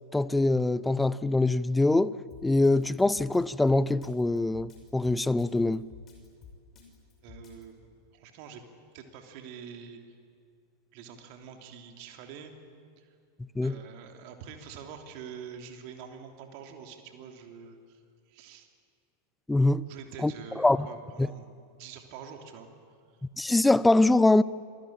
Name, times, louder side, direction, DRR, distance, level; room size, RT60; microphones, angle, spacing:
voice 1, 0.1-2.2 2.4-5.9 13.6-13.7 19.5-19.8 20.2-20.3 20.6-20.9 21.2-21.3 23.4-24.4, left 2 dB, 5° left, 0.6 m, -23 dB
Drum kit, 2.3-7.6, left 6 dB, 30° left, 6.5 m, -51 dB
voice 2, 7.2-7.7 8.1-8.6 8.9-10.0 10.9-12.5 13.0-13.1 13.6-18.0 18.3-18.7 19.9-22.7, right 7 dB, 45° right, 3.1 m, -46 dB
27.0 x 21.0 x 8.9 m
figure-of-eight pair, 90°, 0 cm